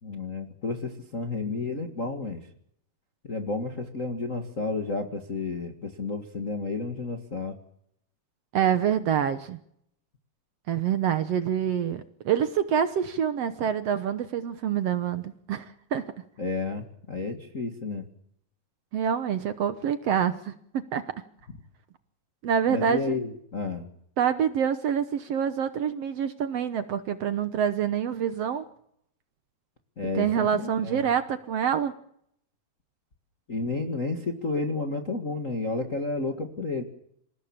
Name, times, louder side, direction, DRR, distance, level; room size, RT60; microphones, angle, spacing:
voice 1, 0.0-2.4 3.2-7.6 16.4-18.1 22.7-23.9 30.0-31.0 33.5-36.8, left 3 dB, 30° left, 4 dB, 1.7 m, -31 dB
voice 2, 8.5-9.6 10.7-16.1 18.9-21.1 22.4-23.2 24.2-28.6 30.1-31.9, right 8 dB, 65° right, 11 dB, 1.6 m, -26 dB
27.0 x 17.0 x 7.3 m, 0.70 s
omnidirectional pair, 3.9 m